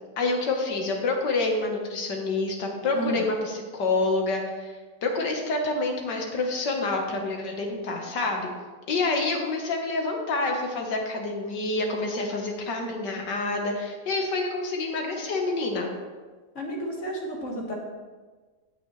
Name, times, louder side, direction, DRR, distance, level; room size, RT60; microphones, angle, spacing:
voice 1, 0.2-4.7 5.0-8.5 8.9-15.9, left 3 dB, 85° left, 2 dB, 2.0 m, -27 dB
voice 2, 16.6-17.8, right 1 dB, 45° left, -1 dB, 2.0 m, -32 dB
16.5 x 6.2 x 3.2 m, 1.3 s
omnidirectional pair, 1.8 m